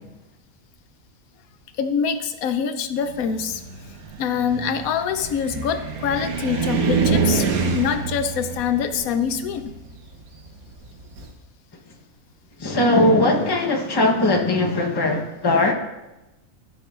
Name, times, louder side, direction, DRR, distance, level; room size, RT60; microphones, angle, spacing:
voice 1, 1.8-3.6 4.2-7.5 7.7-9.7, left 7 dB, 85° left, 9 dB, 1.0 m, -25 dB
Car, 3.1-11.3, right 5 dB, 80° right, 1.4 m, -26 dB
voice 2, 12.6-15.7, left 2 dB, 20° left, 1 dB, 0.8 m, -19 dB
12.5 x 7.2 x 2.4 m, 1.0 s
omnidirectional pair, 1.5 m